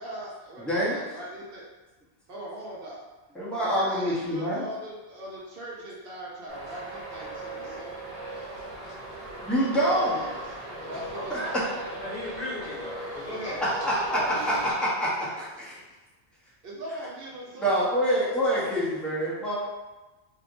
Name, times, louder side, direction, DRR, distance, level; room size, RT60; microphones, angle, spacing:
voice 1, 0.0-1.6 2.3-3.0 3.6-8.1 9.7-11.6 13.3-14.7 16.6-18.5, right 1 dB, 60° right, -5 dB, 0.8 m, -40 dB
voice 2, 0.6-1.0 3.3-4.7 9.4-10.2 11.3-11.4 13.8-14.5 14.8-15.1 15.4-15.8 17.6-19.6, equal, ahead, -9 dB, 0.7 m, -26 dB
Traffic noise roadway noise, 6.5-14.7, right 1 dB, 80° right, 1.1 m, -39 dB
voice 3, 11.1-13.6 14.8-14.9, left 1 dB, 40° left, -10 dB, 1.3 m, -37 dB
3.2 x 2.8 x 2.5 m, 1.1 s
omnidirectional pair, 1.1 m